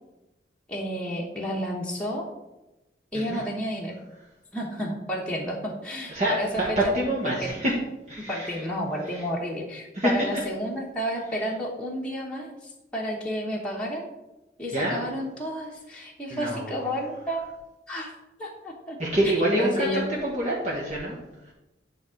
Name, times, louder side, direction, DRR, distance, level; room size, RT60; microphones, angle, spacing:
voice 1, 0.7-2.3 3.1-3.9 4.5-7.6 8.3-14.1 14.6-17.5 17.9-18.1 18.4-19.0 19.5-20.0, equal, 5° left, -4 dB, 1.2 m, -31 dB
voice 2, 6.1-7.7 8.1-8.6 9.1-9.2 9.9-10.1 14.7-15.0 16.3-16.7 19.0-21.2, right 1 dB, 40° right, -5 dB, 1.5 m, -26 dB
10.0 x 3.6 x 6.4 m, 1.0 s
head